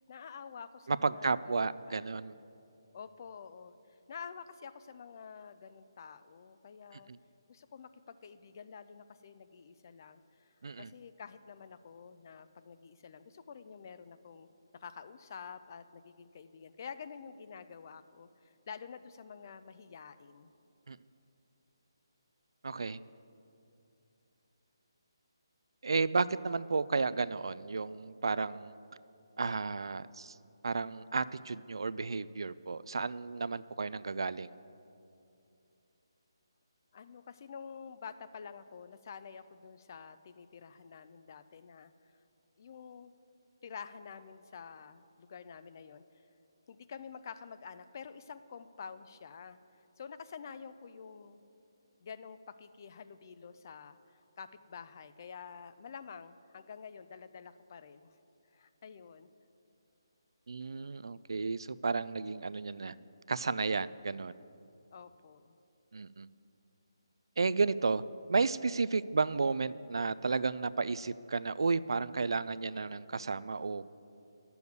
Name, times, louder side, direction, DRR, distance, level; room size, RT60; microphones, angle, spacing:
voice 1, 0.1-2.1 2.9-3.7 4.1-7.1 7.5-10.5 10.8-20.5 36.9-41.9 42.6-43.1 43.6-46.0 46.7-49.6 50.0-51.4 52.0-58.1 58.5-59.3 64.9-65.6, left 6 dB, 45° left, 12 dB, 0.5 m, -49 dB
voice 2, 0.9-2.3 7.1-7.2 10.6-10.9 20.9-21.0 22.6-23.0 25.8-28.7 29.4-30.4 30.6-34.5 60.5-62.9 63.3-64.3 65.9-66.3 67.4-68.0 68.3-73.8, right 4 dB, 70° right, 17 dB, 0.3 m, -32 dB
9.1 x 7.0 x 8.1 m, 2.7 s
figure-of-eight pair, 150°, 3 cm